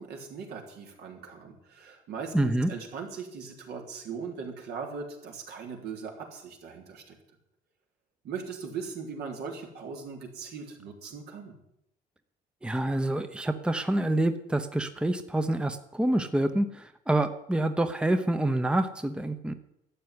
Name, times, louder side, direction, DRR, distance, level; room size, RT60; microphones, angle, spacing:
voice 1, 0.0-7.2 8.2-11.6, right 5 dB, 75° right, 1 dB, 3.6 m, -39 dB
voice 2, 2.3-2.7 12.6-19.5, right 1 dB, 5° right, 9 dB, 0.9 m, -27 dB
12.5 x 8.3 x 9.6 m, 0.80 s
cardioid pair, 110°, 17 cm